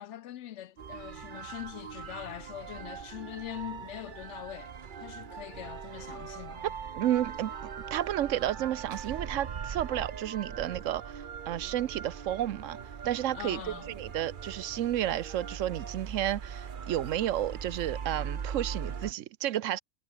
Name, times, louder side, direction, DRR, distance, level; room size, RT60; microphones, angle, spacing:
voice 1, 0.0-4.7 5.0-6.6 13.3-13.9, left 12 dB, 70° left, 0.8 m, -42 dB
sound 1, 0.8-19.1, right 7 dB, 45° right, 0.9 m, -41 dB
voice 2, 6.9-7.5 7.9-12.8 13.0-13.6 13.9-19.8, right 12 dB, 75° right, 1.0 m, -31 dB
omnidirectional pair, 1.4 m